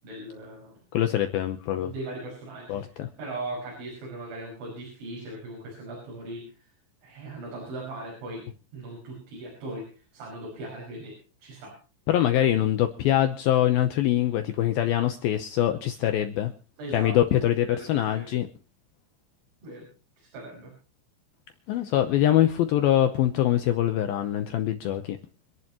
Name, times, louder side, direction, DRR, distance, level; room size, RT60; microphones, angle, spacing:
voice 1, 0.0-0.8 1.7-6.7 7.0-11.7 16.8-17.2 17.7-18.3 19.6-19.9 20.2-20.7, right 2 dB, 75° right, -2 dB, 8.1 m, -39 dB
voice 2, 0.9-1.9 2.7-3.1 12.1-16.5 16.9-18.5 21.7-25.2, left 12 dB, 80° left, 7 dB, 2.1 m, -24 dB
27.5 x 11.0 x 3.0 m, 0.36 s
omnidirectional pair, 5.3 m